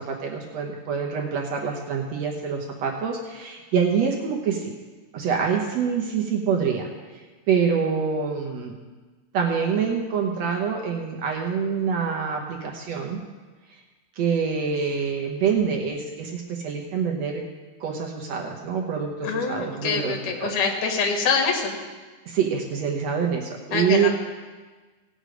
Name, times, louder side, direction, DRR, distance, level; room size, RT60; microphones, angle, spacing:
voice 1, 0.0-4.7 5.1-6.9 7.5-8.8 9.3-13.2 14.2-17.4 17.8-20.5 22.3-24.1, right 6 dB, 65° right, 1 dB, 2.0 m, -26 dB
voice 2, 19.2-21.7 23.7-24.1, left 5 dB, 75° left, 2 dB, 3.0 m, -25 dB
17.5 x 6.7 x 5.1 m, 1.3 s
omnidirectional pair, 3.6 m